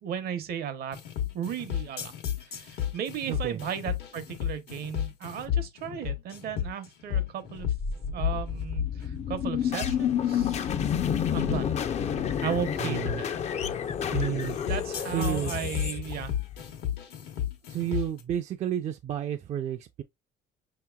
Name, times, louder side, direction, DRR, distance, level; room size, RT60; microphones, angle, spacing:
voice 1, 0.0-1.0 1.3-2.1 2.5-7.7 8.1-10.7 11.3-11.8 12.4-13.4 14.7-16.3, right 9 dB, 65° right, 0.8 m, -35 dB
sound 1, 0.9-18.2, left 10 dB, 80° left, 1.1 m, -33 dB
voice 2, 3.3-3.6 12.8-13.2 14.1-14.6 15.1-15.5 17.7-20.0, right 10 dB, 45° right, 0.4 m, -31 dB
sound 2, 7.6-16.7, left 8 dB, 40° left, 0.4 m, -30 dB
5.5 x 2.9 x 2.2 m
cardioid pair, 110°, 17 cm